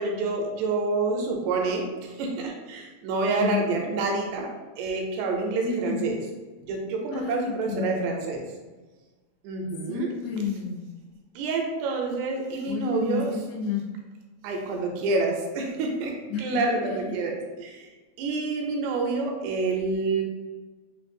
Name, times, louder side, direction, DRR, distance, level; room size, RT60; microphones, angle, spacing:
voice 1, 0.0-6.2 6.6-8.4 9.4-10.1 11.4-13.3 14.4-17.9 18.2-20.2, right 3 dB, 80° right, 1 dB, 2.6 m, -28 dB
voice 2, 3.4-3.7 5.7-6.1 7.1-8.1 9.9-10.9 12.7-13.9 16.3-17.1, left 6 dB, 80° left, -2 dB, 2.5 m, -31 dB
6.7 x 2.3 x 2.6 m, 1.2 s
omnidirectional pair, 4.9 m